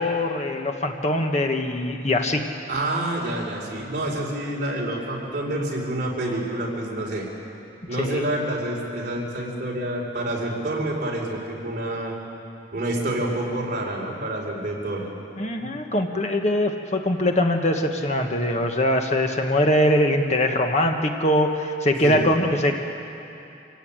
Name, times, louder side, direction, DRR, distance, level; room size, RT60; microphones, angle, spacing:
voice 1, 0.0-2.5 8.0-8.3 15.4-22.7, left 1 dB, 40° left, 3 dB, 1.3 m, -22 dB
voice 2, 2.7-7.3 7.9-12.1 12.7-15.1 15.6-15.7 22.0-22.3, right 1 dB, 45° right, -2 dB, 4.7 m, -28 dB
26.0 x 16.5 x 8.9 m, 2.7 s
head